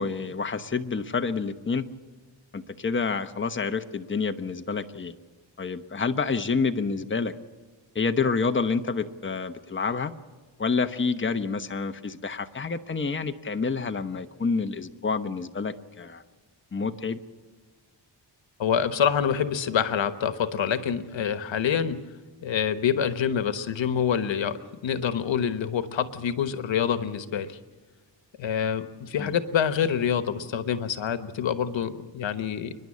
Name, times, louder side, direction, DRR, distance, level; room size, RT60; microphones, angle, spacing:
voice 1, 0.0-1.9 2.5-5.1 5.6-7.3 7.9-10.1 10.6-16.2 16.7-17.2 29.2-29.4, left 4 dB, 25° left, 7 dB, 1.1 m, -28 dB
voice 2, 18.6-22.0 22.4-27.6 28.4-32.8, left 8 dB, 85° left, 10 dB, 1.2 m, -26 dB
30.0 x 11.0 x 8.6 m, 1.4 s
wide cardioid pair, 95°, 44 cm